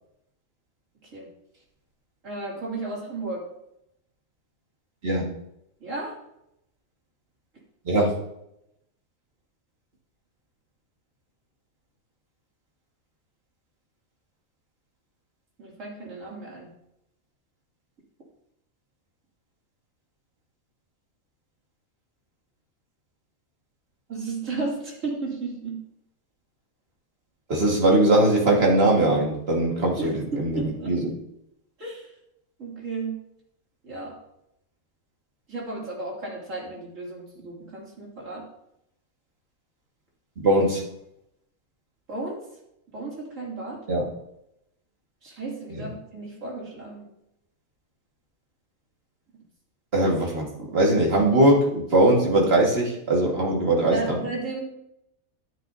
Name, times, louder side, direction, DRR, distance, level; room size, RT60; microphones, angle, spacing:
voice 1, 2.2-3.5 5.8-6.1 15.6-16.7 24.1-25.8 30.0-31.0 31.8-32.1 32.6-33.2 33.8-34.1 35.5-38.5 42.1-42.4 42.9-43.8 45.2-47.0 53.9-54.6, right 3 dB, 60° right, -4 dB, 3.0 m, -34 dB
voice 2, 27.5-31.1 40.4-40.8 43.9-44.1 45.7-45.9 49.9-54.2, right 1 dB, 45° right, -1 dB, 2.0 m, -21 dB
13.0 x 7.5 x 2.7 m, 0.81 s
omnidirectional pair, 1.5 m